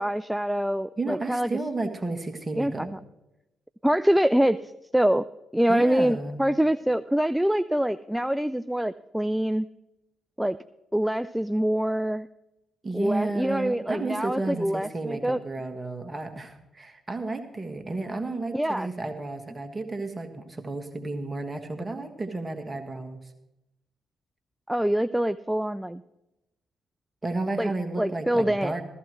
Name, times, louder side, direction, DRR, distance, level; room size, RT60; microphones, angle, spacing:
voice 1, 0.0-1.5 2.5-3.0 3.8-5.2 5.5-9.7 10.4-10.6 10.9-12.3 12.9-15.4 18.5-18.9 24.7-26.0 27.6-27.7 28.0-28.7, right 1 dB, 5° right, 12 dB, 0.4 m, -25 dB
voice 2, 1.0-3.0 5.7-6.4 12.8-23.2 27.2-28.8, right 2 dB, 25° right, 6 dB, 1.7 m, -32 dB
15.0 x 14.0 x 3.1 m, 0.92 s
figure-of-eight pair, 40°, 0 cm